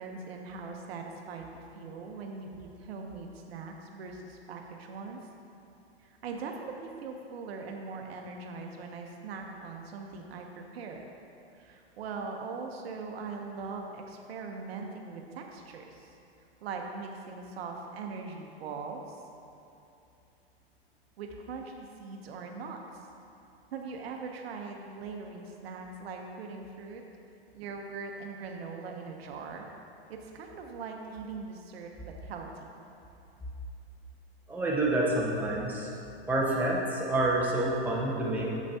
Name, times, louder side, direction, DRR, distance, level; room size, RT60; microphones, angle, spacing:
voice 1, 0.0-5.2 6.0-11.0 11.5-16.1 16.6-19.2 21.2-22.8 23.7-27.0 27.5-29.7 30.1-32.7, right 4 dB, 70° right, 2 dB, 0.9 m, -41 dB
voice 2, 34.5-35.9 36.3-38.5, right 1 dB, 5° right, -5 dB, 1.2 m, -28 dB
8.4 x 7.3 x 2.8 m, 2.7 s
hypercardioid pair, 115°, 32 cm